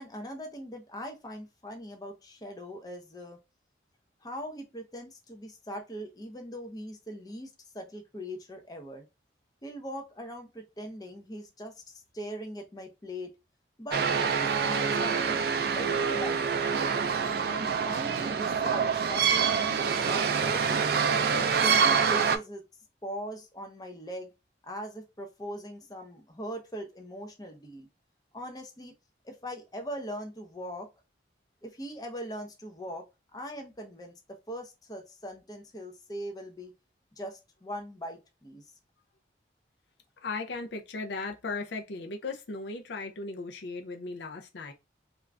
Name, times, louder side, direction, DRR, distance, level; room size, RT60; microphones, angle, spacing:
voice 1, 0.0-3.4 4.2-9.0 9.6-13.3 13.8-14.0 14.3-16.9 17.3-20.9 21.3-22.6 23.0-24.3 24.6-27.9 28.3-28.9 29.2-30.9 31.6-36.7 37.2-38.6, equal, 20° left, 0.6 m, -41 dB
sound 1, 13.9-22.4, right 6 dB, 55° right, 0.3 m, -26 dB
voice 2, 40.2-44.7, left 3 dB, 70° left, 0.5 m, -37 dB
2.4 x 2.3 x 3.2 m
head